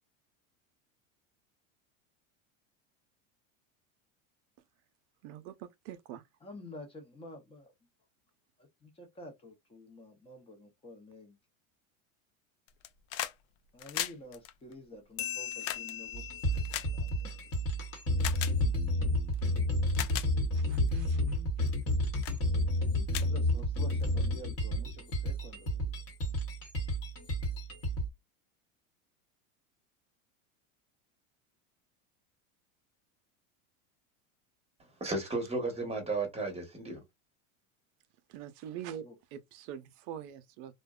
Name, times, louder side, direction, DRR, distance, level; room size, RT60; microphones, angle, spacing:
voice 1, 5.2-6.2 20.5-21.4 38.3-39.0 39.3-40.7, right 10 dB, 60° right, 0.6 m, -44 dB
voice 2, 6.4-7.7 8.6-11.4 13.7-16.2 16.5-17.4 23.2-26.0 39.0-39.2, left 1 dB, 15° left, 0.6 m, -49 dB
sound 1, 12.7-13.4 13.7-17.6 18.2-18.6 19.3-19.4 19.8-20.3 20.9-21.1 21.7-21.9 22.2-22.4 22.8-22.9 23.1-24.0 25.2-25.3, left 13 dB, 65° left, 0.5 m, -38 dB
sound 2, 15.2-18.2, left 11 dB, 80° left, 0.8 m, -42 dB
sound 3, 16.1-28.1, left 1 dB, 35° left, 1.0 m, -31 dB
voice 3, 35.0-37.0, right 3 dB, 15° right, 1.0 m, -34 dB
2.6 x 2.1 x 2.3 m
supercardioid pair, 125°, 42 cm